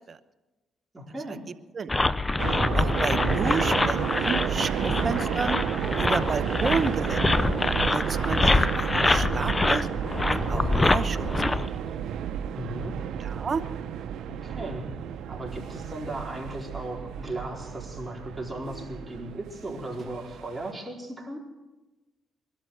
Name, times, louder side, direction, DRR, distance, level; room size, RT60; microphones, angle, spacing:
voice 1, 0.9-1.4 3.0-3.4 12.5-12.9 14.2-14.8 15.3-21.4, right 1 dB, 10° right, -2 dB, 4.4 m, -36 dB
sound 1, 1.9-11.8, left 2 dB, 20° left, 0.6 m, -25 dB
sound 2, 2.4-20.7, right 9 dB, 75° right, 0.9 m, -32 dB
voice 2, 2.7-5.6 6.0-7.5 7.9-9.9 10.3-11.3 13.2-13.6, right 5 dB, 40° right, 12 dB, 1.0 m, -31 dB
22.0 x 13.0 x 4.9 m, 1.1 s
cardioid pair, 90°, 0 cm